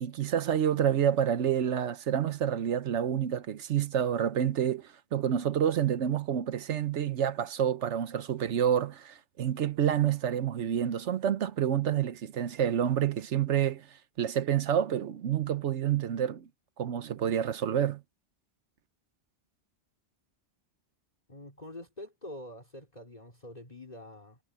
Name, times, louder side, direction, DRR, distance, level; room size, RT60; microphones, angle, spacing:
voice 1, 0.0-16.5 16.8-18.0, right 9 dB, 80° right, 1.1 m, -28 dB
voice 2, 21.3-24.4, left 1 dB, 35° left, 3.8 m, -46 dB
omnidirectional pair, 1.2 m